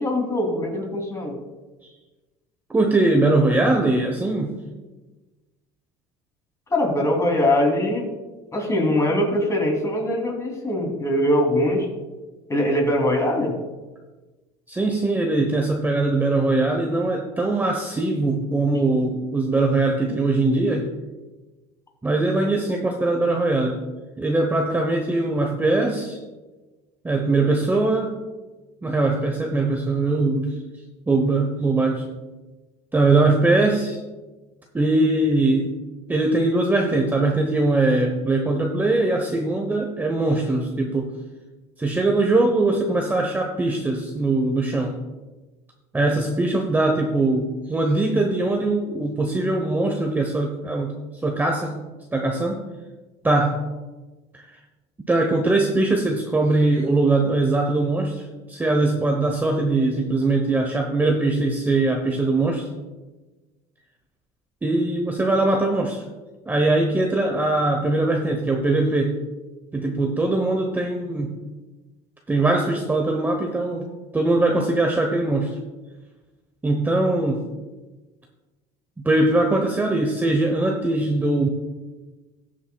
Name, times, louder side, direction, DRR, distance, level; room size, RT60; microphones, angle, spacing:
voice 1, 0.0-1.4 6.7-8.0 8.5-11.9 12.5-13.6, left 1 dB, 20° left, 0 dB, 2.8 m, -22 dB
voice 2, 2.7-4.6 14.7-20.9 22.0-23.8 24.2-26.2 27.0-28.1 28.8-30.6 31.1-32.1 32.9-34.0 34.7-35.7 36.1-41.1 41.8-45.0 45.9-50.9 51.2-51.7 52.1-52.6 53.2-53.6 54.3-54.6 55.1-62.7 64.6-66.0 66.5-69.2 69.7-71.4 72.3-75.6 76.6-77.5 79.0-81.5, right 2 dB, 10° right, 2 dB, 0.9 m, -21 dB
19.5 x 7.5 x 2.3 m, 1.2 s
cardioid pair, 125°, 17 cm